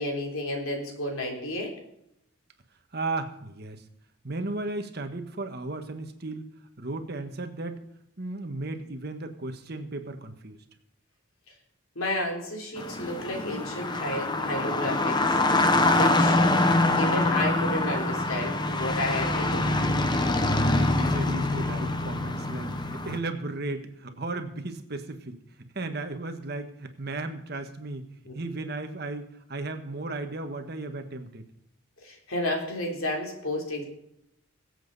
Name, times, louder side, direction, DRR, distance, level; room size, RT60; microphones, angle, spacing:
voice 1, 0.0-1.8 12.0-15.3 15.9-16.4 17.0-19.7 28.3-28.4 32.0-33.8, left 1 dB, 90° left, 1 dB, 3.5 m, -31 dB
voice 2, 2.9-3.8 4.2-6.5 6.8-7.8 8.2-10.6 20.7-25.4 25.7-28.1 28.3-31.4, right 2 dB, 50° right, 6 dB, 1.4 m, -35 dB
sound 1, 12.8-23.2, left 2 dB, 20° left, 0.9 m, -25 dB
22.0 x 8.0 x 4.1 m, 0.78 s
head